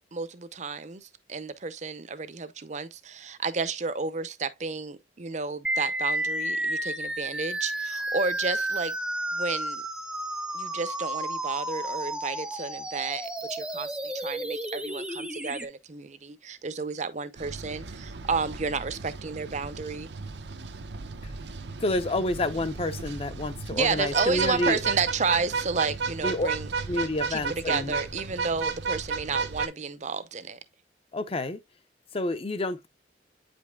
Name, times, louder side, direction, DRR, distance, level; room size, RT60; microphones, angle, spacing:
voice 1, 0.1-8.9 9.3-9.8 10.5-20.1 23.7-26.7 27.3-30.6, right 4 dB, 40° right, 0.7 m, -31 dB
sound 1, 5.6-15.6, right 1 dB, 5° right, 0.7 m, -32 dB
sound 2, 17.4-29.7, right 4 dB, 75° right, 0.7 m, -34 dB
voice 2, 21.8-24.8 26.2-26.5 26.9-28.0 31.1-31.6 32.1-32.9, left 2 dB, 35° left, 0.7 m, -29 dB
8.6 x 5.3 x 2.3 m
head